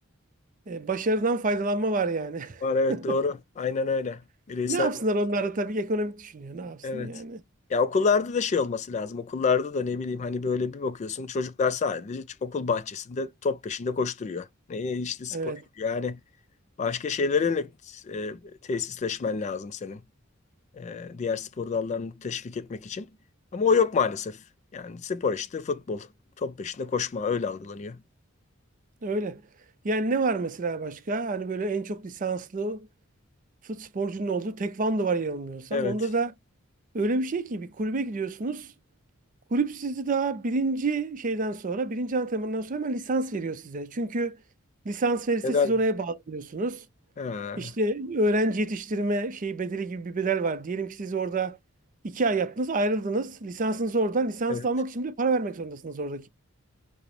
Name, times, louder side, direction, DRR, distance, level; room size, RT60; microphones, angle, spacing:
voice 1, 0.7-2.6 2.9-3.0 4.7-7.4 15.3-15.6 29.0-29.4 29.8-32.9 33.7-36.3 36.9-38.7 39.5-44.4 44.9-46.8 47.6-51.6 52.0-56.3, right 2 dB, 40° right, 0.5 m, -28 dB
voice 2, 2.6-4.2 4.5-4.9 6.8-7.2 7.7-15.4 15.8-16.2 16.8-18.4 18.7-20.0 20.7-23.1 23.5-24.4 24.7-26.1 26.4-28.0 35.7-36.0 45.4-45.7 47.2-47.7 54.5-54.6, left 5 dB, 35° left, 0.3 m, -28 dB
4.9 x 2.0 x 3.0 m
head